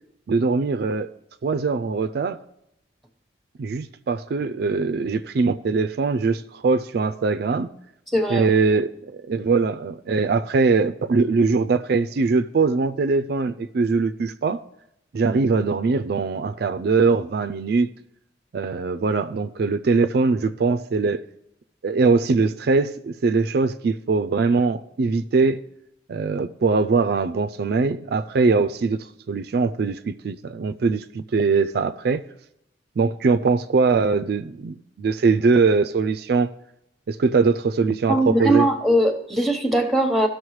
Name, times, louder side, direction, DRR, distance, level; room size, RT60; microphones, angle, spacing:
voice 1, 0.3-1.1 1.4-2.4 3.6-7.7 8.3-14.6 15.1-17.9 18.5-21.2 21.8-25.6 26.1-32.2 33.0-36.5 37.1-38.7, right 4 dB, 60° right, 0.4 m, -21 dB
voice 2, 8.1-8.5 38.1-40.3, right 1 dB, ahead, 1.0 m, -20 dB
17.0 x 6.4 x 3.2 m
head